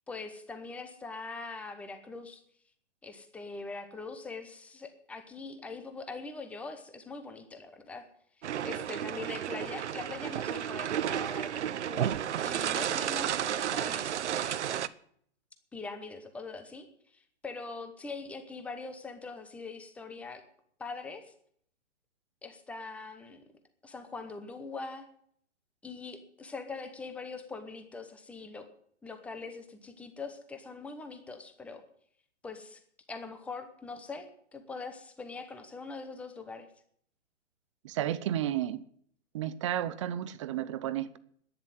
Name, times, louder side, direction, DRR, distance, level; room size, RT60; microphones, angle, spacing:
voice 1, 0.1-2.4 3.0-8.1 8.4-12.1 12.4-14.8 15.7-16.9 17.1-20.4 20.8-21.3 22.4-23.4 23.8-25.1 25.8-28.7 29.0-31.8 32.4-32.8 33.1-36.7, left 4 dB, 5° left, 8 dB, 0.8 m, -42 dB
sound 1, 8.4-14.9, right 10 dB, 70° right, 0.9 m, -32 dB
voice 2, 37.8-38.8 39.3-41.2, right 11 dB, 25° right, 15 dB, 0.6 m, -32 dB
11.0 x 10.0 x 9.2 m, 0.64 s
hypercardioid pair, 155°, 36 cm